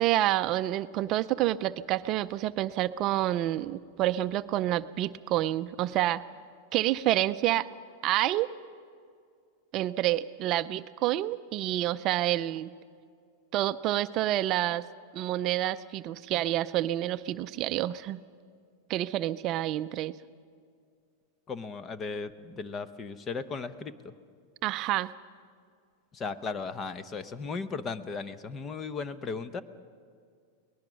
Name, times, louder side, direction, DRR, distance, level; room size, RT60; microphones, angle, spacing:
voice 1, 0.0-6.2 6.7-7.7 8.0-8.5 9.7-12.7 13.5-14.8 15.1-18.2 18.9-20.1 24.6-25.1, right 14 dB, 40° right, 12 dB, 0.5 m, -28 dB
voice 2, 21.5-24.1 26.1-29.6, left 4 dB, 25° left, 13 dB, 0.8 m, -36 dB
23.0 x 19.0 x 6.3 m, 2.2 s
supercardioid pair, 140°, 0 cm